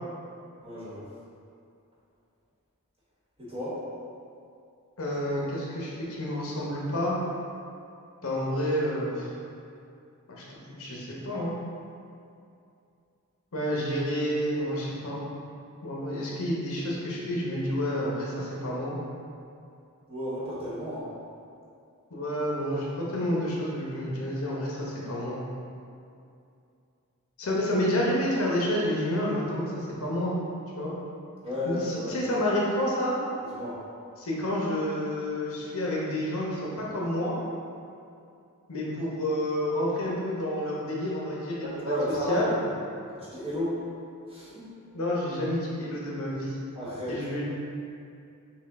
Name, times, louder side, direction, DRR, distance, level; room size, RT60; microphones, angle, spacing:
voice 1, 0.6-1.1 3.4-3.9 20.1-21.1 31.4-32.2 33.5-33.8 41.6-42.7 43.1-43.8 44.3-44.7 46.7-47.2, equal, 25° right, -9 dB, 1.2 m, -32 dB
voice 2, 5.0-7.2 8.2-9.3 10.3-11.5 13.5-15.2 15.8-19.0 22.1-25.4 27.4-30.4 30.8-30.9 31.6-33.2 34.2-37.3 38.7-41.9 42.3-42.6 44.9-46.6 47.1-47.4, left 1 dB, 70° left, -5 dB, 0.9 m, -29 dB
6.2 x 2.3 x 3.6 m, 2.5 s
head